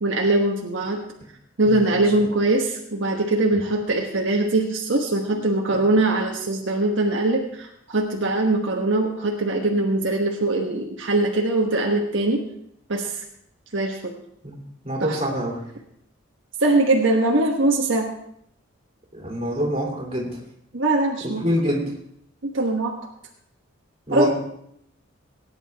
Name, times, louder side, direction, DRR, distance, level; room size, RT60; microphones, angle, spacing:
voice 1, 0.0-1.0 1.6-12.4 12.9-13.2 13.7-14.1 15.0-15.2 16.6-18.1 20.7-21.4 22.4-23.0 24.1-24.3, right 2 dB, 70° right, 0 dB, 1.3 m, -22 dB
voice 2, 1.6-2.0 5.3-5.4 5.7-5.8 14.4-14.6 14.8-15.6 19.1-20.3 21.4-21.9 24.1-24.3, equal, 30° right, -2 dB, 3.0 m, -25 dB
18.5 x 9.6 x 3.5 m, 0.72 s
head